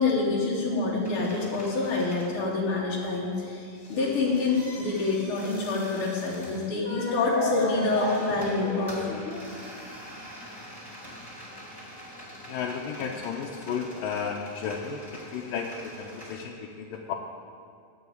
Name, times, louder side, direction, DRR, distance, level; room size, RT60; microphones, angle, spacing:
voice 1, 0.0-9.5, left 3 dB, 55° left, -5 dB, 1.6 m, -27 dB
sound 1, 1.0-3.1 3.5-16.3, equal, 5° left, 2.6 m, -45 dB
voice 2, 12.5-17.1, left 6 dB, 85° left, 0 dB, 2.3 m, -33 dB
11.0 x 6.4 x 8.5 m, 2.3 s
omnidirectional pair, 3.9 m